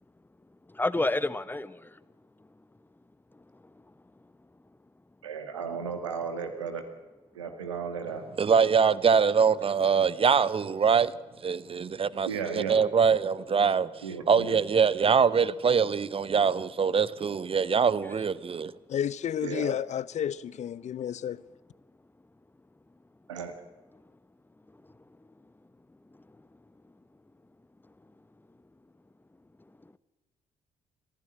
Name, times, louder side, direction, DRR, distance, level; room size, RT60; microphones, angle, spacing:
voice 1, 0.7-2.0 2.4-2.5 3.3-3.7 18.0-18.1 23.9-24.0 24.8-25.0 26.1-26.4 29.8-30.0, left 2 dB, 15° left, 1.1 m, -32 dB
voice 2, 5.2-6.8 7.4-8.2 12.3-12.8 14.0-14.6 19.4-19.7 23.3-23.5, right 6 dB, 90° right, 1.8 m, -34 dB
voice 3, 8.4-11.1 11.4-12.3 12.5-13.9 14.3-18.7, right 6 dB, 35° right, 1.0 m, -23 dB
voice 4, 18.9-21.4, left 9 dB, 50° left, 0.7 m, -31 dB
21.5 x 15.0 x 7.9 m
hypercardioid pair, 45°, 15 cm